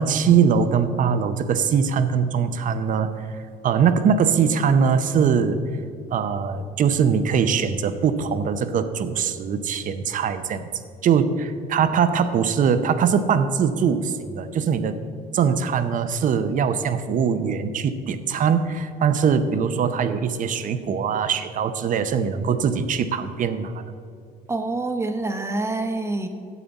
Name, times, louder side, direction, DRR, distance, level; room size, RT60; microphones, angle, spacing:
voice 1, 0.0-3.4 3.6-5.6 6.1-10.7 11.0-15.0 15.3-23.8, right 6 dB, 50° right, 10 dB, 0.8 m, -22 dB
voice 2, 24.5-26.3, right 2 dB, 15° right, 6 dB, 1.0 m, -26 dB
12.0 x 8.5 x 4.1 m, 2.4 s
cardioid pair, 110°, 17 cm